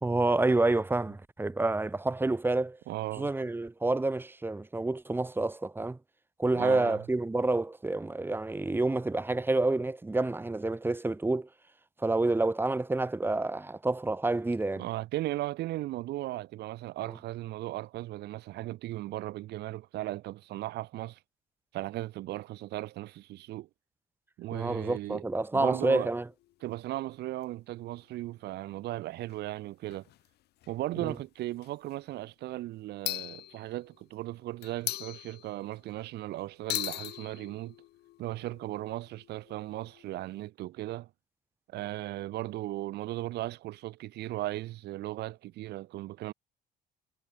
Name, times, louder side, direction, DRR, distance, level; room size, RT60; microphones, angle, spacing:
voice 1, 0.0-2.8 3.2-6.0 6.4-11.5 12.0-14.8 24.5-26.2 31.0-31.1, right 2 dB, 10° right, 1.3 m, -28 dB
voice 2, 2.9-3.3 6.5-7.0 14.8-21.2 21.7-23.7 24.4-25.2 25.5-26.1 26.6-30.1 30.7-37.7 38.2-41.1 41.7-46.3, right 16 dB, 80° right, 6.1 m, -37 dB
sound 1, 25.6-26.7 27.4-27.5 27.7-27.8 29.3-29.4 29.9-30.3 30.6-30.8 31.5-31.9 33.0-34.1 34.6-35.9 36.7-40.5, left 15 dB, 75° left, 2.6 m, -40 dB
cardioid pair, 110°, 17 cm